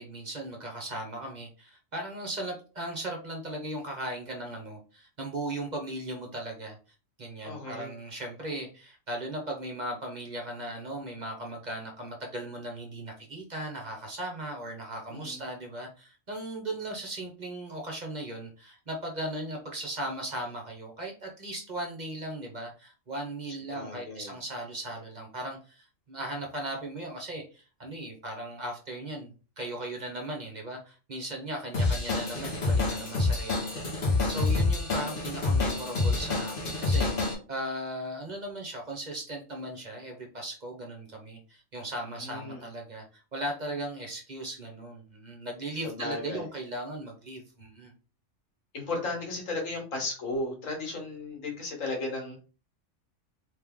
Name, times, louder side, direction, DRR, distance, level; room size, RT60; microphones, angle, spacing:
voice 1, 0.0-6.8 7.2-47.9, right 1 dB, 40° right, 1 dB, 1.0 m, -37 dB
voice 2, 7.4-7.9 15.1-15.4 23.7-24.3 42.1-42.6 45.8-46.5 48.7-52.4, left 2 dB, 85° left, 1 dB, 1.9 m, -35 dB
Drum kit / Drum, 31.7-37.3, left 3 dB, 45° left, 1.3 m, -27 dB
3.3 x 3.2 x 3.6 m, 0.35 s
omnidirectional pair, 1.3 m